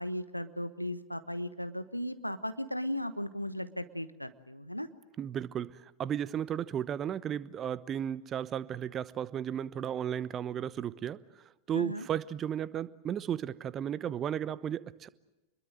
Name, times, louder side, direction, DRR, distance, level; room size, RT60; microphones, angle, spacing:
voice 1, 0.0-4.9 11.7-12.1, equal, 90° left, 12 dB, 1.1 m, -36 dB
voice 2, 5.2-5.7 6.0-11.2 11.7-15.1, right 9 dB, 25° right, 18 dB, 0.9 m, -34 dB
28.0 x 22.0 x 7.7 m, 1.0 s
figure-of-eight pair, 90°, 0 cm